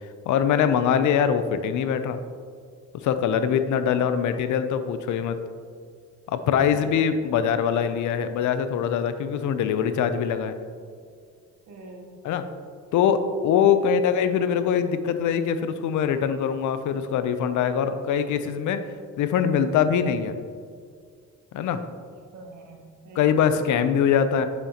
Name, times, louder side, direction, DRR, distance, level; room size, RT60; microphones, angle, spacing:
voice 1, 0.3-2.2 3.0-5.4 6.3-10.6 12.2-12.4 12.9-18.8 19.2-20.3 21.5-21.8 23.2-24.5, left 8 dB, 75° left, 10 dB, 0.6 m, -23 dB
voice 2, 3.9-4.4 6.7-7.2 11.7-12.2 13.6-13.9 22.0-23.4, right 2 dB, 75° right, 1 dB, 1.4 m, -45 dB
8.2 x 7.1 x 3.0 m, 2.1 s
cardioid pair, 90°, 30 cm